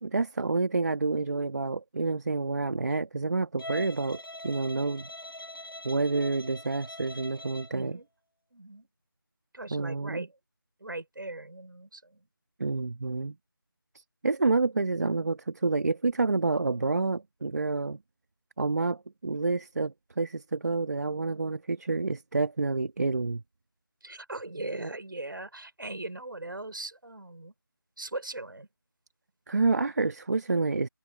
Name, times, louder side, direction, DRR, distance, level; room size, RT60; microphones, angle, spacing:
voice 1, 0.0-5.1 5.8-8.0 9.7-10.3 12.6-13.3 13.9-18.0 18.6-23.4 29.5-30.9, right 3 dB, 50° right, 1.6 m, -28 dB
Bowed string instrument, 3.6-7.8, left 1 dB, 85° left, 6.4 m, -43 dB
voice 2, 7.7-8.1 8.5-8.9 9.5-10.4 10.8-12.3 24.0-27.5 28.0-28.7, right 2 dB, 65° right, 5.0 m, -39 dB
figure-of-eight pair, 165°, 12 cm